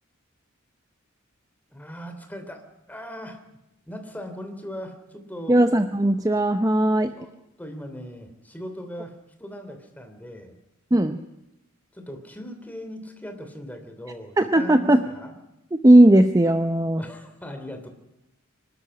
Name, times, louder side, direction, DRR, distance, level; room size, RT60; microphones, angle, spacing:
voice 1, 1.7-2.6 2.9-3.4 3.9-5.6 7.2-10.5 11.9-15.4 17.0-17.9, equal, 10° left, 5 dB, 3.0 m, -39 dB
voice 2, 5.5-7.1 10.9-11.2 14.4-15.1 15.7-17.0, right 1 dB, 15° right, 9 dB, 0.7 m, -17 dB
25.0 x 13.0 x 9.7 m, 0.92 s
head